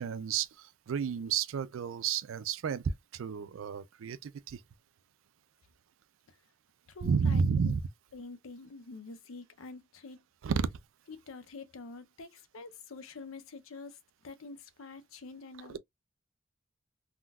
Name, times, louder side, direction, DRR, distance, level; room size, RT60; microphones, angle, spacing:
voice 1, 0.0-4.6 7.0-7.8 10.4-10.7, right 6 dB, 80° right, 0.4 m, -31 dB
voice 2, 6.9-7.8 8.1-10.2 11.1-15.8, left 3 dB, 90° left, 0.6 m, -47 dB
3.6 x 2.3 x 2.2 m
head